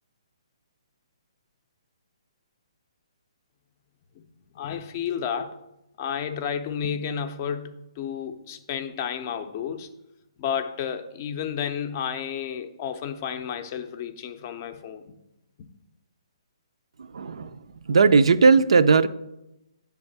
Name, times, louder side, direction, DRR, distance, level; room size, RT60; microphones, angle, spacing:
voice 1, 4.5-5.6 6.0-9.9 10.4-15.0, left 8 dB, 25° left, 0.5 m, -31 dB
voice 2, 17.1-17.5 17.9-19.1, right 4 dB, 80° right, 0.4 m, -17 dB
7.9 x 3.5 x 6.6 m
hypercardioid pair, 165°, 3 cm